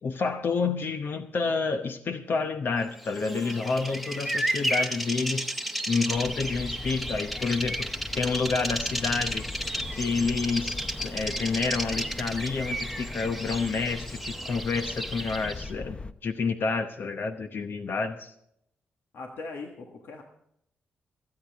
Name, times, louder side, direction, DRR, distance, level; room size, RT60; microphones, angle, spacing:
voice 1, 0.0-5.5 5.9-9.4 9.9-10.8 11.0-18.3, left 4 dB, 60° left, 8 dB, 0.8 m, -29 dB
Bird vocalization bird call bird song, 3.0-15.7, right 1 dB, ahead, 1.1 m, -33 dB
sound 1, 6.1-16.1, left 3 dB, 25° left, 0.7 m, -40 dB
voice 2, 19.1-20.2, left 3 dB, 75° left, 2 dB, 1.5 m, -40 dB
26.0 x 8.7 x 3.5 m, 0.75 s
cardioid pair, 60°, 4 cm